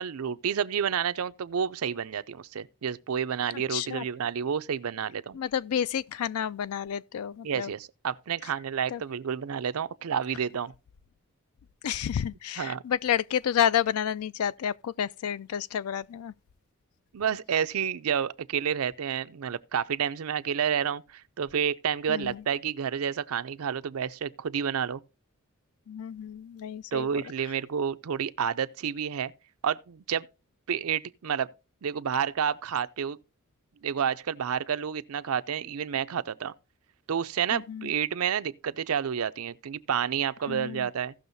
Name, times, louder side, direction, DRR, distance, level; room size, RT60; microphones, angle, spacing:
voice 1, 0.0-5.4 7.4-10.7 12.6-12.8 17.1-25.0 26.9-29.3 29.6-30.3 30.7-31.5 31.8-33.2 33.8-36.5 37.1-41.1, right 8 dB, 85° right, 0.5 m, -30 dB
voice 2, 3.7-4.0 5.3-7.7 8.9-9.0 11.8-16.3 22.1-22.4 25.9-27.1 37.5-37.9 40.5-40.9, left 9 dB, 90° left, 0.4 m, -30 dB
16.5 x 6.3 x 2.7 m
head